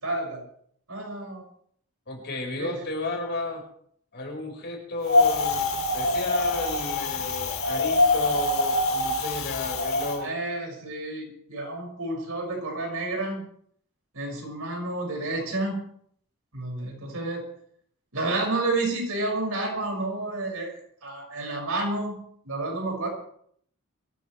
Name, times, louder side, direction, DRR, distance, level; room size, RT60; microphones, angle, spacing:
voice 1, 0.0-0.4 0.9-1.4 2.6-2.7 10.2-13.4 14.1-15.8 16.5-17.4 18.1-23.1, right 2 dB, 75° right, 0 dB, 6.2 m, -30 dB
voice 2, 2.1-3.6 4.1-10.3, left 2 dB, 50° left, 1 dB, 5.2 m, -33 dB
Wind, 5.1-10.2, left 2 dB, 70° left, 2.2 m, -24 dB
23.0 x 15.0 x 3.3 m, 0.64 s
head